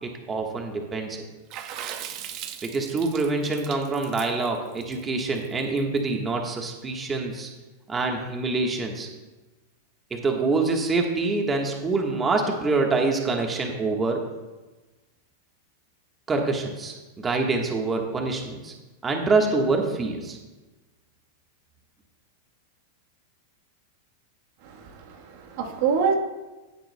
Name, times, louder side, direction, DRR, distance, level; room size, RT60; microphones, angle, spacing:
voice 1, 0.0-1.2 2.6-7.5 7.9-9.1 10.1-14.2 16.3-18.7 19.0-20.4, right 3 dB, 20° right, 2 dB, 1.3 m, -25 dB
Water / Splash splatter, 1.5-6.0, right 10 dB, 45° right, 0.7 m, -38 dB
voice 2, 24.6-26.1, right 6 dB, 60° right, 4 dB, 1.2 m, -26 dB
16.0 x 7.6 x 2.2 m, 1.2 s
hypercardioid pair, 130°, 0 cm